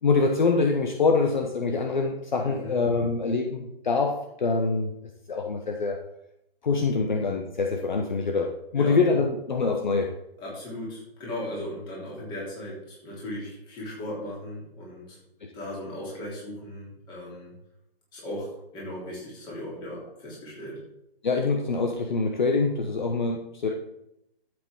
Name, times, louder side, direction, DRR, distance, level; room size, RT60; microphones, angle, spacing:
voice 1, 0.0-4.9 5.3-6.0 6.6-10.1 21.2-23.7, left 4 dB, 50° left, 3 dB, 1.1 m, -25 dB
voice 2, 2.4-2.8 8.7-9.0 10.4-15.2 15.5-17.5 18.1-20.8, left 1 dB, 15° left, -4 dB, 3.3 m, -37 dB
12.0 x 7.9 x 3.7 m, 0.81 s
figure-of-eight pair, 140°, 31 cm